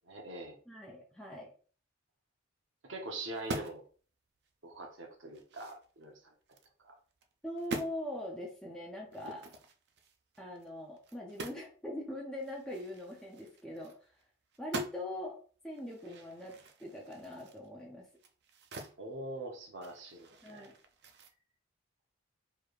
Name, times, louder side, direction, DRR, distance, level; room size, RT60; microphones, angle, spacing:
voice 1, 0.1-0.6 2.8-3.8 4.6-6.3 6.8-6.9 19.0-20.7, right 2 dB, 75° right, 2 dB, 1.0 m, -43 dB
voice 2, 0.7-1.5 7.4-9.5 10.4-14.1 14.6-15.4 15.6-18.1 20.4-20.7, left 1 dB, 5° left, -4 dB, 0.6 m, -42 dB
sound 1, 3.3-3.9 4.4-4.5 5.0-6.7 7.1-7.3 7.6-8.0 9.1-11.7 12.0-12.1 12.4-14.2 14.5-15.2 15.7-19.0 19.3-21.3, right 2 dB, 55° right, 0.4 m, -45 dB
4.6 x 3.2 x 2.4 m, 0.42 s
head